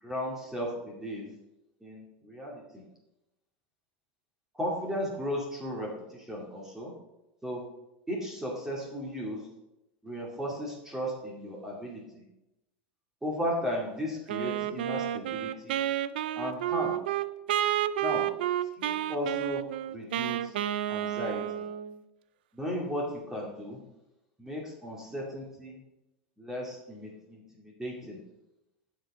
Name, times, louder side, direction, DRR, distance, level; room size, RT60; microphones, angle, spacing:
voice 1, 0.0-1.3 1.8-2.8 4.5-6.9 7.4-7.6 8.1-9.4 10.0-12.3 13.2-15.8 16.4-17.0 18.0-18.3 18.8-20.5 20.9-21.6 22.5-23.8 24.4-25.8 26.4-28.2, equal, 10° right, -3 dB, 2.3 m, -35 dB
Wind instrument woodwind instrument, 14.3-22.0, right 12 dB, 85° right, 0.4 m, -30 dB
15.5 x 5.2 x 3.7 m, 0.93 s
supercardioid pair, 120°, 5 cm